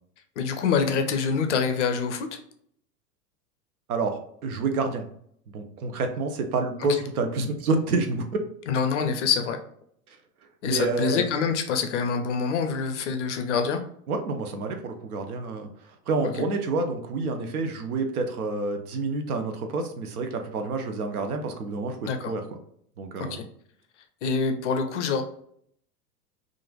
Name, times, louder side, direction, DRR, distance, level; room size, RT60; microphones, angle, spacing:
voice 1, 0.4-2.4 8.7-9.6 10.6-13.8 22.0-22.3 23.2-23.4 24.2-25.2, left 5 dB, 50° left, 6 dB, 0.5 m, -25 dB
voice 2, 3.9-5.1 5.5-8.2 10.6-11.2 14.1-15.7 16.1-22.4 23.0-23.4, right 3 dB, 65° right, 6 dB, 0.6 m, -28 dB
2.9 x 2.5 x 2.3 m, 0.67 s
figure-of-eight pair, 95°, 49 cm